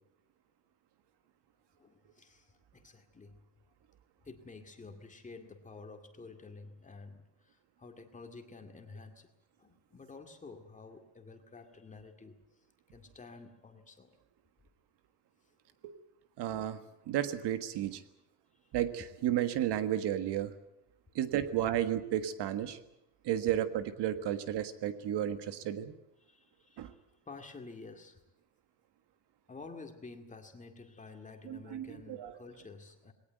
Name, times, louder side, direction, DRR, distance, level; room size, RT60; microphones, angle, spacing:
voice 1, 1.8-3.4 4.2-9.3 9.6-12.4 12.9-14.1 23.5-23.6 26.2-28.2 29.5-33.1, left 3 dB, 15° left, 5 dB, 2.2 m, -50 dB
voice 2, 16.4-16.8 17.1-18.0 18.7-20.5 21.1-22.8 23.2-25.9 26.8-26.9 31.4-32.3, right 11 dB, 65° right, 10 dB, 1.6 m, -33 dB
20.5 x 18.5 x 9.3 m, 0.85 s
cardioid pair, 170°, 43 cm